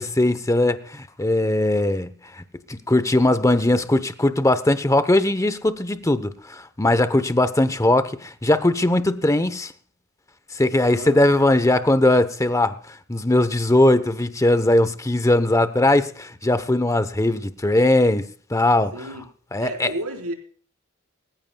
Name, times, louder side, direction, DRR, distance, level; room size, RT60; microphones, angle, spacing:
voice 1, 0.0-2.1 2.7-9.7 10.5-12.7 13.1-19.1 19.5-19.9, left 1 dB, 15° left, 0.8 m, -20 dB
voice 2, 10.9-11.3 18.9-19.2 19.6-20.3, right 1 dB, 85° right, 4.3 m, -32 dB
24.0 x 15.0 x 2.3 m
head